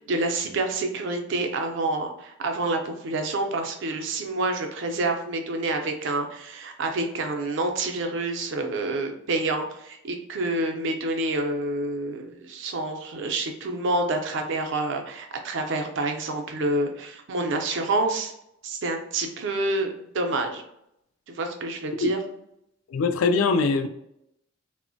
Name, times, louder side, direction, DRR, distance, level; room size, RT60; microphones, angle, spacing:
voice 1, 0.1-18.3 18.6-20.6 21.3-22.2, right 2 dB, 65° right, 0.4 m, -28 dB
voice 2, 22.9-23.9, left 4 dB, 85° left, 0.3 m, -22 dB
3.0 x 2.0 x 2.5 m
head